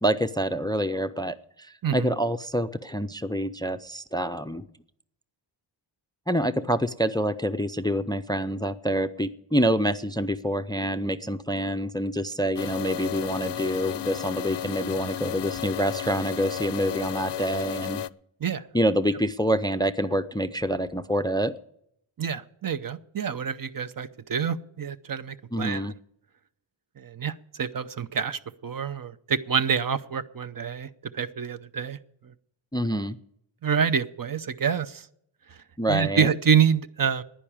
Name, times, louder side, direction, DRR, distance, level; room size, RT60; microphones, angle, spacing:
voice 1, 0.0-4.6 6.3-18.0 18.7-21.5 25.5-25.9 32.7-33.2 35.8-36.3, equal, 10° left, 13 dB, 0.5 m, -27 dB
voice 2, 1.8-2.2 18.4-18.6 22.2-25.9 27.0-30.9 31.1-32.0 32.2-32.3 33.6-35.1 35.5-35.6 35.9-37.2, right 7 dB, 45° right, 13 dB, 0.7 m, -27 dB
sound 1, 12.6-18.1, left 10 dB, 60° left, 0.6 m, -33 dB
10.5 x 10.0 x 8.7 m, 0.73 s
cardioid pair, 75°, 48 cm